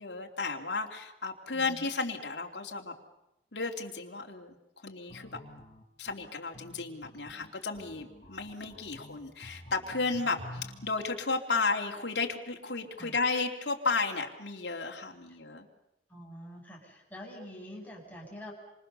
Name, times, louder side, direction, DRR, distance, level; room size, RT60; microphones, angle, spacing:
voice 1, 0.0-3.0 3.5-4.6 4.8-5.4 6.0-15.7, left 4 dB, 70° left, 1 dB, 3.0 m, -33 dB
voice 2, 1.5-1.9 13.0-13.2 16.1-18.5, equal, 10° left, -1 dB, 7.3 m, -46 dB
sound 1, 5.1-10.9, left 1 dB, 35° left, 3.3 m, -49 dB
27.5 x 26.5 x 6.9 m, 0.91 s
head